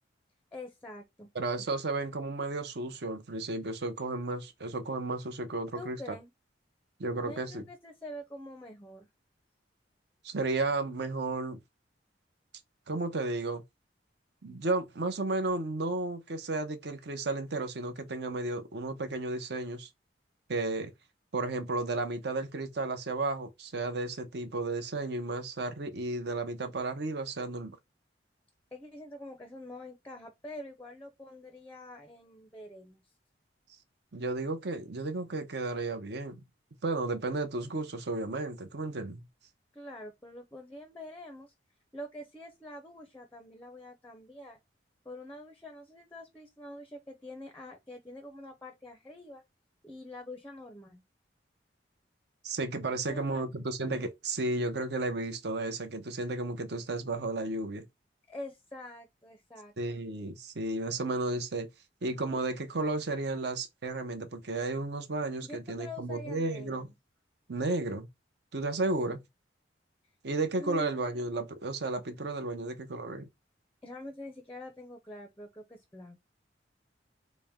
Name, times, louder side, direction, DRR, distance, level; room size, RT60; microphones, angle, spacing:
voice 1, 0.5-1.3 5.8-6.3 7.2-9.1 28.7-33.0 39.7-41.5 41.9-44.6 45.0-49.4 49.8-51.0 53.1-53.5 58.3-60.0 65.4-66.9 69.1-69.2 70.6-71.0 73.8-76.2, left 1 dB, 10° left, 0.5 m, -46 dB
voice 2, 1.3-6.0 7.0-7.6 10.2-11.6 12.9-13.6 14.4-19.9 20.5-20.9 21.3-27.7 34.1-36.4 36.8-39.2 52.4-57.9 59.8-61.7 62.0-66.9 67.5-68.1 68.5-69.2 70.2-73.3, right 2 dB, 60° right, 0.7 m, -33 dB
4.1 x 2.1 x 3.5 m
head